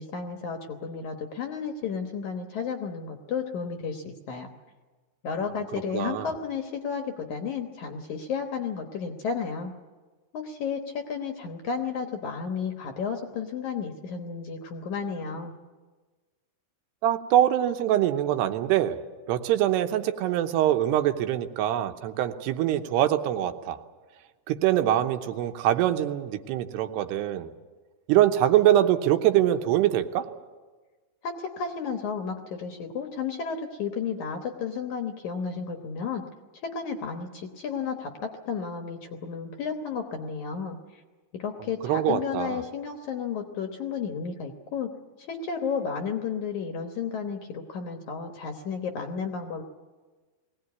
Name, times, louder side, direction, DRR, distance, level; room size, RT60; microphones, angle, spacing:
voice 1, 0.0-4.5 5.2-9.7 10.3-15.5 31.2-36.2 36.6-41.0 41.4-44.9 45.2-49.6, left 6 dB, 65° left, 5 dB, 2.0 m, -32 dB
voice 2, 5.9-6.3 17.0-19.0 19.3-23.8 24.5-27.5 28.1-30.3 41.8-42.6, right 12 dB, 85° right, 8 dB, 3.0 m, -24 dB
21.0 x 18.0 x 9.5 m, 1.3 s
omnidirectional pair, 4.7 m